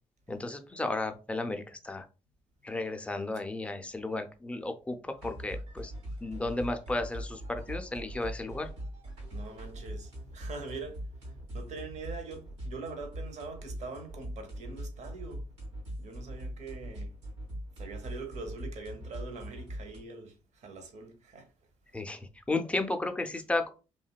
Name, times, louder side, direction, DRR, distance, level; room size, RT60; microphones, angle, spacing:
voice 1, 0.3-2.1 2.6-5.9 6.2-8.7 21.9-22.2 22.5-23.7, left 2 dB, 10° left, 0.4 m, -33 dB
sound 1, 5.2-20.0, equal, 80° right, 0.9 m, -41 dB
voice 2, 9.3-15.4 16.0-17.1 17.8-21.5, right 4 dB, 50° right, 0.7 m, -43 dB
2.7 x 2.2 x 2.2 m
figure-of-eight pair, 45°, 15 cm